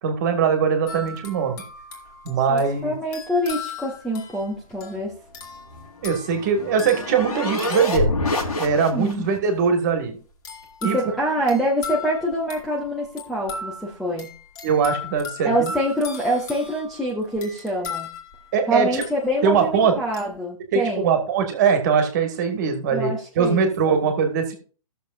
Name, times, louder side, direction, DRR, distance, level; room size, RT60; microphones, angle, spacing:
voice 1, 0.0-1.6 2.3-2.9 6.0-8.1 8.6-10.2 10.8-11.0 14.6-15.7 18.5-19.0 19.4-19.9 20.7-24.5, right 6 dB, 30° right, 5 dB, 1.8 m, -21 dB
sound 1, 0.9-8.7 10.4-19.6 20.1-20.4, left 4 dB, 30° left, 2.4 m, -38 dB
voice 2, 2.5-5.1 8.9-9.3 10.8-14.3 15.4-18.1 18.7-21.1 22.9-24.0, equal, ahead, -4 dB, 0.5 m, -25 dB
sound 2, 5.7-9.3, left 2 dB, 85° left, 3.5 m, -27 dB
16.5 x 6.7 x 2.5 m, 0.39 s
hypercardioid pair, 165°, 19 cm